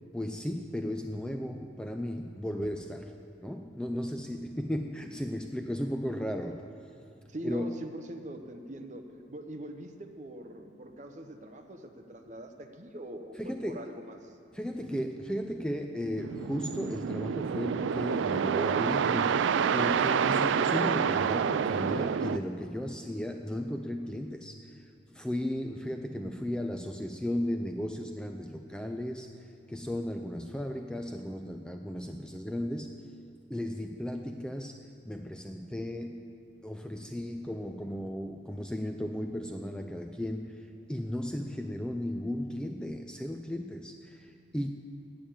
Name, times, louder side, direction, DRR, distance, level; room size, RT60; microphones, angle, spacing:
voice 1, 0.1-3.1 3.4-6.7 7.4-7.8 13.4-13.9 14.5-19.4 19.7-29.3 29.7-33.1 33.5-36.4 36.6-40.6 40.9-44.7, equal, 5° left, 5 dB, 0.3 m, -35 dB
voice 2, 7.3-14.4 14.8-15.1 20.1-20.5, right 1 dB, 40° right, 5 dB, 0.8 m, -42 dB
sound 1, 16.2-22.4, right 7 dB, 85° right, 0.3 m, -28 dB
8.8 x 8.7 x 7.6 m, 2.6 s
head